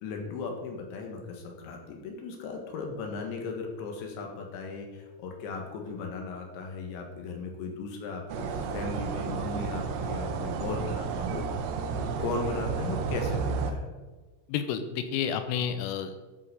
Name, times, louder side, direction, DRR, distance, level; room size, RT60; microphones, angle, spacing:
voice 1, 0.0-11.5 12.0-14.0, left 4 dB, 70° left, 2 dB, 3.5 m, -37 dB
sound 1, 8.3-13.7, right 6 dB, 75° right, 2.7 m, -32 dB
voice 2, 14.5-16.3, left 8 dB, 85° left, 9 dB, 3.5 m, -30 dB
15.0 x 5.6 x 5.0 m, 1.3 s
omnidirectional pair, 5.9 m